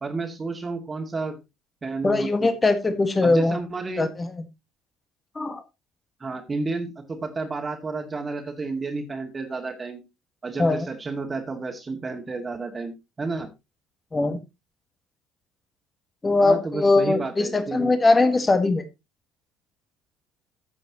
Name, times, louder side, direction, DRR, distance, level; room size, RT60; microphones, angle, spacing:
voice 1, 0.0-1.4 1.8-2.6 3.2-4.1 6.2-10.0 10.4-13.5 16.4-17.9, right 3 dB, 25° right, 3 dB, 2.2 m, -31 dB
voice 2, 2.0-3.6 4.0-4.3 5.3-5.6 10.6-10.9 14.1-14.4 16.2-18.8, left 3 dB, 20° left, 9 dB, 1.7 m, -21 dB
14.5 x 7.6 x 2.9 m, 0.24 s
figure-of-eight pair, 55°, 0 cm